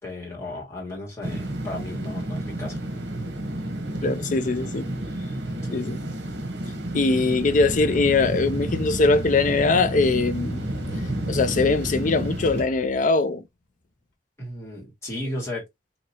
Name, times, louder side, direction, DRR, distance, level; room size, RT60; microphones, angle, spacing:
voice 1, 0.0-2.8 5.5-5.9 14.4-15.7, left 1 dB, 15° left, 1.9 m, -35 dB
sound 1, 1.2-12.6, right 1 dB, 70° right, 1.0 m, -31 dB
voice 2, 4.0-4.9 5.7-6.0 6.9-10.6 11.3-13.4, left 3 dB, 45° left, 0.5 m, -22 dB
sound 2, 7.5-13.0, left 2 dB, 75° left, 1.4 m, -36 dB
2.9 x 2.9 x 2.8 m
head